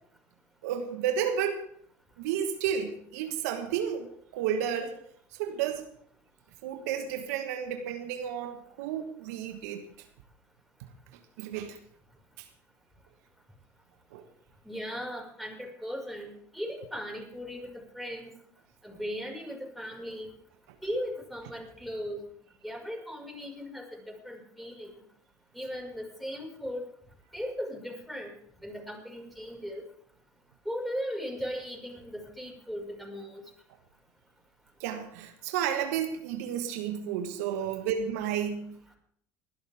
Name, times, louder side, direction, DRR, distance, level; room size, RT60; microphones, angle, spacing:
voice 1, 0.6-1.7 2.2-5.0 5.3-5.9 6.6-9.8 11.1-11.8 12.4-12.5 14.1-14.2 34.8-38.8, right 8 dB, 75° right, 6 dB, 1.5 m, -32 dB
voice 2, 14.6-18.3 18.8-20.3 20.8-22.2 22.6-24.9 25.5-26.9 27.3-28.3 28.6-29.9 30.7-33.4, equal, ahead, 0 dB, 5.7 m, -37 dB
21.0 x 12.5 x 3.6 m, 0.65 s
hypercardioid pair, 75°, 9 cm